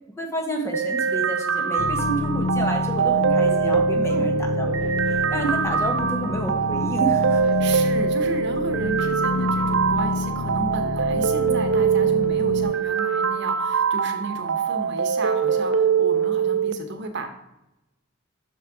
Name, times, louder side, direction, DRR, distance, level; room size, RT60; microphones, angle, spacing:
voice 1, 0.2-7.4, right 1 dB, 15° left, 2 dB, 1.2 m, -30 dB
sound 1, 0.7-16.7, right 6 dB, 75° right, 0.5 m, -23 dB
sound 2, 1.8-12.7, left 3 dB, 85° left, 0.5 m, -28 dB
voice 2, 7.6-17.3, right 3 dB, 60° right, 6 dB, 1.1 m, -33 dB
6.5 x 6.2 x 4.8 m, 0.91 s
head